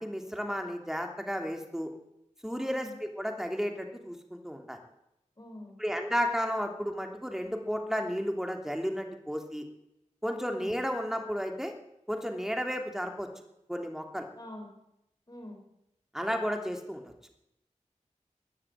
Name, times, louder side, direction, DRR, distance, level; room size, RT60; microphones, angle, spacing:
voice 1, 0.0-1.9 2.4-4.8 5.8-9.6 10.2-11.7 12.1-13.3 13.7-14.3 16.1-17.0, equal, 5° right, 4 dB, 2.8 m, -33 dB
voice 2, 2.6-2.9 5.4-5.8 10.5-10.7 14.3-14.7 15.3-15.6, left 1 dB, 30° left, 2 dB, 4.7 m, -45 dB
16.0 x 9.9 x 9.0 m, 0.84 s
wide cardioid pair, 45°, 13 cm